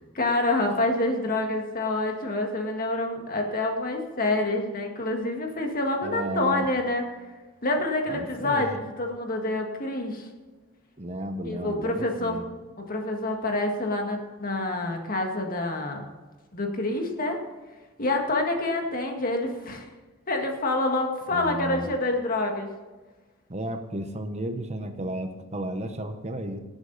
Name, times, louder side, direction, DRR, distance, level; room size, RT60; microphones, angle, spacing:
voice 1, 0.2-7.0 7.6-10.3 11.4-12.4 12.8-16.0 16.5-17.4 18.0-19.8 20.3-22.7, left 2 dB, 45° left, 3 dB, 1.8 m, -27 dB
voice 2, 6.0-6.7 8.1-8.8 11.0-12.5 21.3-21.9 23.5-26.6, right 1 dB, 35° right, 7 dB, 1.0 m, -33 dB
18.0 x 8.2 x 4.1 m, 1.3 s
head